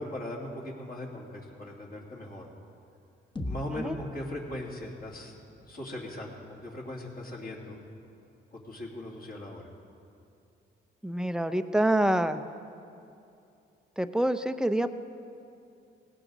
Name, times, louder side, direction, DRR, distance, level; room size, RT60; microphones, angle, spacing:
voice 1, 0.0-2.4 3.4-5.4 5.7-7.8 8.5-9.6, left 1 dB, 45° left, -3 dB, 2.8 m, -39 dB
sound 1, 3.4-7.3, left 1 dB, 25° left, 1.3 m, -43 dB
voice 2, 11.0-12.4 14.0-14.9, right 1 dB, 5° right, 9 dB, 0.7 m, -26 dB
18.0 x 16.5 x 4.0 m, 2.6 s
cardioid pair, 90°, 20 cm